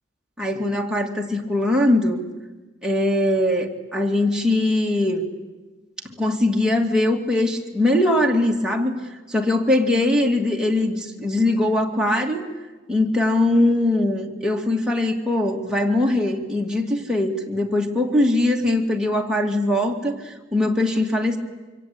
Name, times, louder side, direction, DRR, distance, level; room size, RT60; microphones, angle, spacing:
voice 1, 0.4-2.2 2.8-5.2 6.2-8.9 9.3-12.4 12.9-21.4, left 1 dB, 5° right, -1 dB, 2.3 m, -21 dB
26.0 x 24.0 x 8.5 m, 1.2 s
head